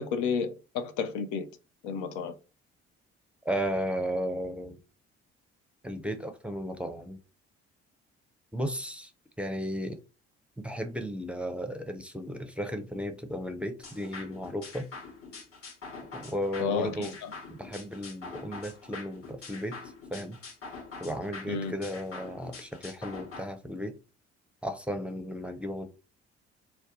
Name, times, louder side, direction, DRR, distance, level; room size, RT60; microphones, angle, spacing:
voice 1, 0.0-1.5 1.8-2.3 16.6-17.3 21.5-21.7, left 6 dB, 65° left, 0.6 m, -31 dB
voice 2, 3.4-4.8 5.8-7.2 8.5-9.1 9.4-10.0 10.6-14.9 16.1-17.1 17.5-19.8 20.1-20.4 21.0-23.9 24.6-25.9, equal, 5° right, 0.6 m, -34 dB
sound 1, 13.8-23.4, left 4 dB, 45° left, 1.1 m, -45 dB
2.6 x 2.2 x 3.7 m
figure-of-eight pair, 50°, 33 cm